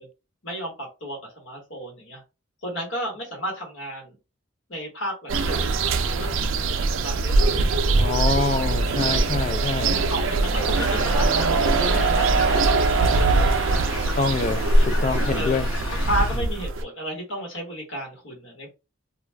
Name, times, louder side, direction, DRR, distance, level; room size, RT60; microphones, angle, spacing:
voice 1, 0.4-2.2 2.6-4.1 4.7-5.8 6.1-6.5 6.9-8.3 9.8-13.6 14.7-14.9 15.3-15.6 16.0-18.7, equal, 60° left, 1.3 m, -33 dB
sound 1, 5.3-16.8, right 3 dB, 65° right, 0.4 m, -22 dB
voice 2, 7.9-9.9 14.2-15.7, left 4 dB, 35° left, 0.3 m, -26 dB
sound 2, 10.5-16.4, left 1 dB, 85° left, 0.9 m, -33 dB
2.4 x 2.3 x 3.3 m
head